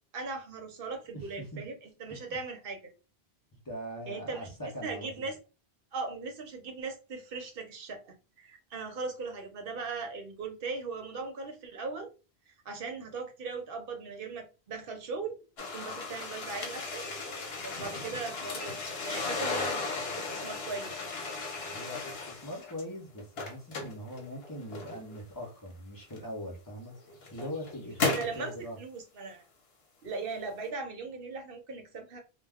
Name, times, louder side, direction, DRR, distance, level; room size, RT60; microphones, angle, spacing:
voice 1, 0.1-2.8 4.1-4.5 4.8-5.4 5.9-12.1 12.5-17.0 17.3-21.2 28.0-29.4 30.0-32.2, right 4 dB, 60° right, 0.9 m, -39 dB
voice 2, 1.1-1.6 2.1-2.4 3.6-5.3 21.7-28.8, equal, 25° left, 0.6 m, -42 dB
sound 1, 15.6-22.8 23.2-25.2 26.1-26.2 26.9-28.4, left 3 dB, 70° left, 1.0 m, -35 dB
2.3 x 2.2 x 3.4 m
omnidirectional pair, 1.1 m